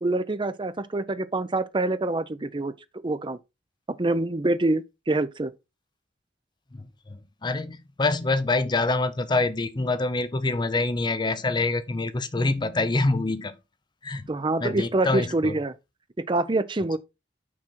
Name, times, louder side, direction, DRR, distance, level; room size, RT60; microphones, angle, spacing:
voice 1, 0.0-2.7 3.0-3.4 3.9-5.5 14.3-15.7 16.3-17.0, right 2 dB, 30° right, 0.6 m, -26 dB
voice 2, 6.7-13.6 14.0-14.3 14.6-15.5, left 2 dB, 25° left, 0.6 m, -26 dB
6.2 x 6.0 x 4.2 m
head